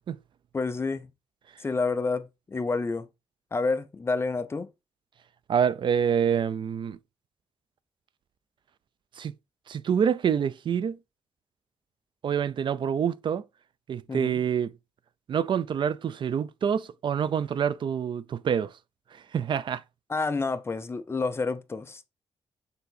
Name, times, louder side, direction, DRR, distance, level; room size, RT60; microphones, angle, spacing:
voice 1, 0.5-1.1 1.6-3.1 3.5-4.7 14.1-14.4 20.1-22.0, left 3 dB, 25° left, 0.7 m, -29 dB
voice 2, 5.5-7.0 9.2-9.3 9.7-11.0 12.2-13.4 13.9-14.7 15.3-18.7 19.3-19.8, right 8 dB, 50° right, 0.5 m, -26 dB
6.9 x 3.9 x 4.0 m
wide cardioid pair, 140°, 11 cm